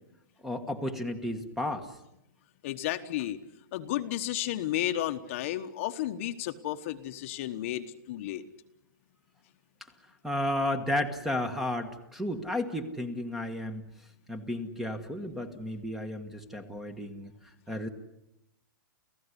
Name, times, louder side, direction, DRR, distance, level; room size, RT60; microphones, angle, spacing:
voice 1, 0.4-1.9 10.2-13.8 14.3-17.3 17.7-17.9, left 1 dB, ahead, 10 dB, 1.4 m, -33 dB
voice 2, 2.6-3.4 3.7-8.4, left 13 dB, 40° left, 8 dB, 1.2 m, -32 dB
29.5 x 15.5 x 9.8 m, 0.86 s
hypercardioid pair, 165°, 11 cm